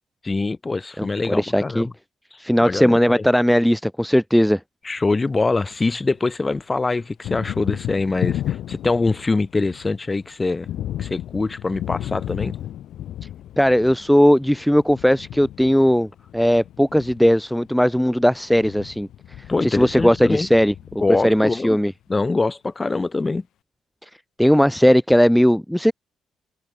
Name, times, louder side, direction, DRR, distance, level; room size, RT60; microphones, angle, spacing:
voice 1, 0.2-1.9 2.6-3.2 4.8-10.7 11.0-12.6 19.5-20.5 21.0-21.8 22.1-23.4, left 3 dB, 25° left, 2.9 m, -24 dB
voice 2, 1.0-1.9 2.4-4.6 13.6-19.1 19.6-20.7 21.2-21.9 24.0-24.1 24.4-25.9, equal, ahead, 0.6 m, -18 dB
Thunder, 5.0-6.2 6.5-21.7, left 12 dB, 75° left, 4.6 m, -33 dB
cardioid pair, 90°, 0 cm